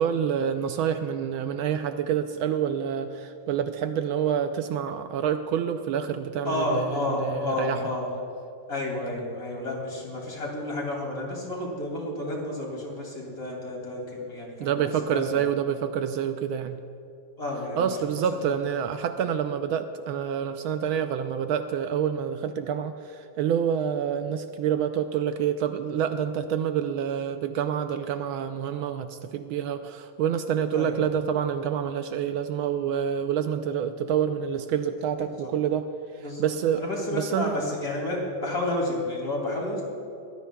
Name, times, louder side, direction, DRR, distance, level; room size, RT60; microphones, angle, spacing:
voice 1, 0.0-7.8 14.6-16.8 17.8-35.9 36.1-36.8 37.1-37.6, right 8 dB, 75° right, 8 dB, 1.3 m, -27 dB
voice 2, 6.4-8.1 8.7-15.5 17.4-18.0 18.3-18.6 30.7-30.9 35.4-35.5 36.2-39.8, left 2 dB, 40° left, -2 dB, 3.1 m, -31 dB
22.0 x 16.0 x 2.3 m, 2.6 s
omnidirectional pair, 2.4 m